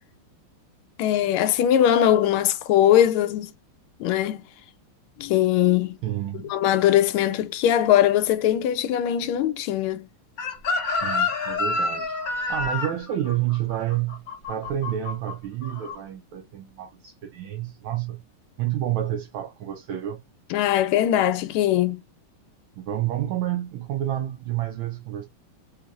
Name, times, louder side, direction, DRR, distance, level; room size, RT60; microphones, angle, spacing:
voice 1, 1.0-3.5 4.0-4.4 5.2-6.0 6.5-10.1 20.5-22.0, left 11 dB, 80° left, 1.4 m, -21 dB
voice 2, 6.0-6.5 10.9-12.2 12.5-14.2 14.5-18.2 18.6-20.2 22.8-25.3, right 12 dB, 75° right, 1.4 m, -29 dB
Chicken rooster, 10.4-15.3 15.6-16.0, left 3 dB, 55° left, 1.1 m, -28 dB
3.5 x 3.2 x 2.3 m
omnidirectional pair, 2.3 m